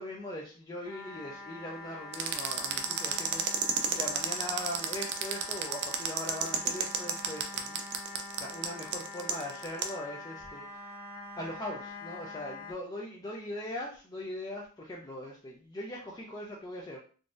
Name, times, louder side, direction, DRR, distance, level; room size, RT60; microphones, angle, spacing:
voice 1, 0.0-10.9 11.4-17.0, left 1 dB, 20° left, -2 dB, 0.4 m, -40 dB
sound 1, 0.8-12.7, left 2 dB, 50° left, 1.4 m, -45 dB
sound 2, 2.1-9.9, right 7 dB, 50° right, 0.4 m, -31 dB
3.8 x 2.5 x 2.4 m, 0.39 s
head